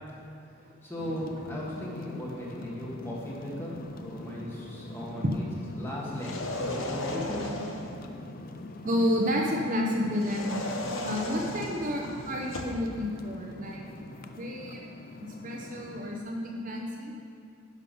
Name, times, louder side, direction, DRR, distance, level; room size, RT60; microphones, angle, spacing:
voice 1, 0.8-3.7 4.0-5.4 5.7-7.5, equal, 10° left, -5 dB, 1.5 m, -37 dB
sound 1, 1.0-16.2, left 2 dB, 40° left, 0.4 m, -43 dB
sound 2, 6.1-8.0 10.2-12.8, left 2 dB, 60° left, 0.9 m, -36 dB
voice 2, 8.8-10.7 11.0-13.8 14.2-14.8 15.2-17.1, equal, 35° right, -1 dB, 0.7 m, -30 dB
11.0 x 6.0 x 5.4 m, 2.5 s
head